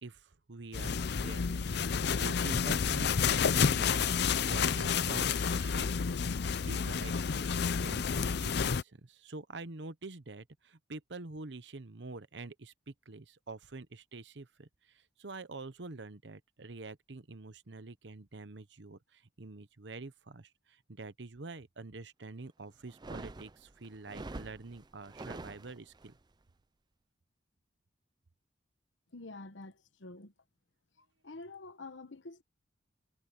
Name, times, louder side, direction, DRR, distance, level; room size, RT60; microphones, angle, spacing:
voice 1, 0.0-26.2, right 3 dB, 70° right, 1.0 m, -47 dB
sound 1, 0.7-8.8, left 6 dB, 65° left, 0.5 m, -30 dB
sound 2, 22.9-26.1, right 2 dB, 25° right, 0.5 m, -46 dB
voice 2, 29.1-29.7 30.0-30.3 31.2-32.4, left 2 dB, 85° left, 1.1 m, -47 dB
head